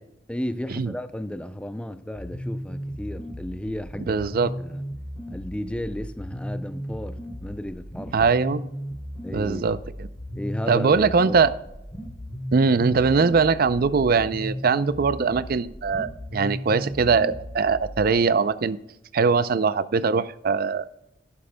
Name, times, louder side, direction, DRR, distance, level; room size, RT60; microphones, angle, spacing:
voice 1, 0.3-4.2 4.6-4.8 5.3-8.3 9.2-9.7 10.4-11.4, left 1 dB, 5° left, 0.4 m, -33 dB
sound 1, 2.2-18.2, equal, 25° left, 3.2 m, -36 dB
voice 2, 4.1-4.5 8.1-8.6 9.3-10.1 10.7-11.5 12.5-18.8 19.1-20.9, right 5 dB, 55° right, 0.4 m, -21 dB
11.5 x 11.5 x 2.2 m
head